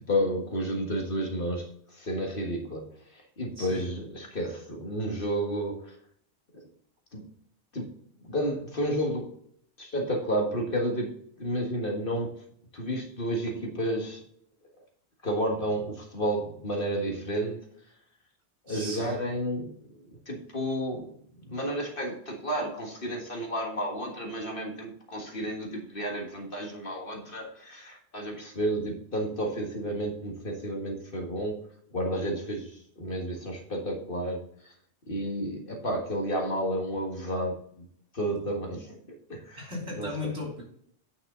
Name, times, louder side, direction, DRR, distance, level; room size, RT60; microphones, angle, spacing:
voice 1, 0.0-2.9 3.1-6.0 6.5-6.6 7.1-7.2 7.7-7.9 8.2-9.3 9.8-12.3 12.7-14.2 15.2-17.7 18.7-21.1 21.5-31.6 31.9-34.7 35.1-37.9 38.1-39.0 39.3-39.6 39.9-40.1, equal, 50° left, 1.8 m, -31 dB
voice 2, 18.7-19.1 39.6-40.6, left 2 dB, 70° right, 3.5 m, -36 dB
9.4 x 5.5 x 3.8 m
omnidirectional pair, 1.2 m